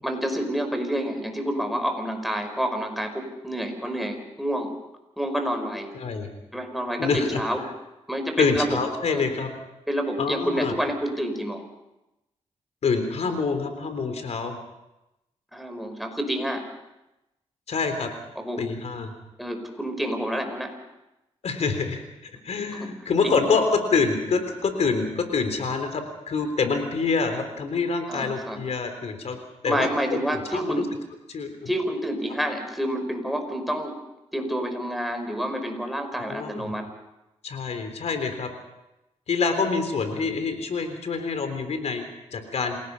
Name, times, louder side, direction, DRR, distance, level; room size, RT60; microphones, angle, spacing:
voice 1, 0.0-4.7 5.2-5.9 6.5-7.6 8.1-8.8 9.1-9.3 9.9-11.6 15.5-16.6 18.4-18.6 19.4-20.8 28.1-28.6 29.7-30.9 31.7-34.0 34.3-36.9, equal, ahead, 5 dB, 5.2 m, -28 dB
voice 2, 5.9-6.3 7.0-7.4 8.4-9.5 10.2-10.7 12.8-14.6 17.7-18.1 18.6-19.1 21.4-29.4 29.6-30.8 31.3-31.7 36.3-36.7 37.4-38.5 39.3-42.0 42.3-42.8, left 4 dB, 70° left, 7 dB, 3.7 m, -26 dB
28.0 x 18.0 x 5.6 m, 0.93 s
cardioid pair, 60°, 12 cm